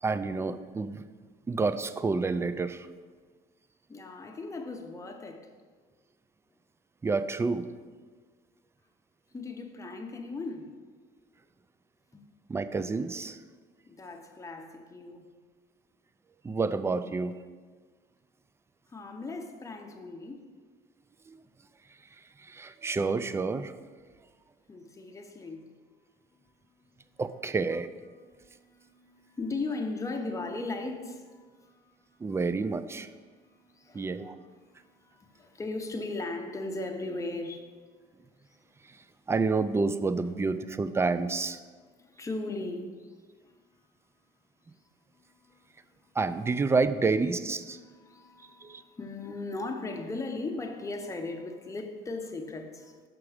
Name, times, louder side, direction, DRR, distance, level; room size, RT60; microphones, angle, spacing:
voice 1, 0.0-1.0 1.5-2.9 7.0-7.6 12.5-13.4 16.4-17.3 22.5-23.7 27.2-27.9 32.2-33.1 33.9-34.4 39.3-41.6 46.2-47.8 48.6-48.8, right 4 dB, 15° right, 0.3 m, -29 dB
voice 2, 3.9-5.5 9.3-10.8 12.1-12.2 13.9-15.3 18.9-20.4 24.7-25.7 28.2-32.4 33.0-37.8 38.5-38.6 42.0-43.2 43.4-43.5 45.5-45.7 46.0-46.1 47.6-53.0, left 3 dB, 20° left, 0.8 m, -38 dB
6.0 x 5.9 x 4.9 m
cardioid pair, 110°, 17 cm